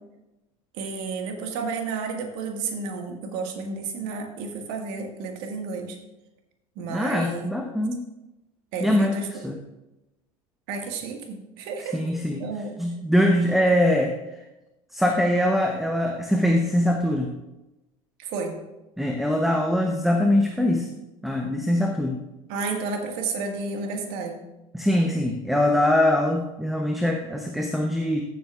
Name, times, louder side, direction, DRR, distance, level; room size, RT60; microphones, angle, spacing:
voice 1, 0.7-6.0 6.8-7.5 8.7-9.3 10.7-12.0 12.4-12.7 13.6-13.7 18.2-18.6 22.5-24.4, right 4 dB, 60° right, 3 dB, 1.7 m, -31 dB
voice 2, 6.9-8.0 8.8-9.6 11.9-12.4 12.8-14.1 14.9-17.3 19.0-20.9 21.2-22.2 24.7-28.2, left 1 dB, ahead, 3 dB, 0.9 m, -22 dB
14.5 x 7.8 x 2.4 m, 0.99 s
hypercardioid pair, 75°, 18 cm